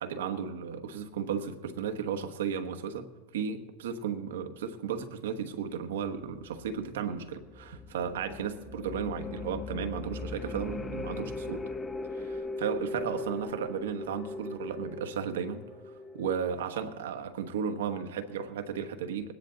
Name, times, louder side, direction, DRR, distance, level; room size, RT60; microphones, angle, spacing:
voice 1, 0.0-3.1 3.3-11.6 12.1-15.6 16.1-19.3, right 7 dB, 80° right, 7 dB, 1.2 m, -34 dB
sound 1, 6.2-16.5, left 3 dB, 15° left, 0.8 m, -39 dB
20.5 x 10.0 x 3.9 m, 1.2 s
hypercardioid pair, 105°, 0 cm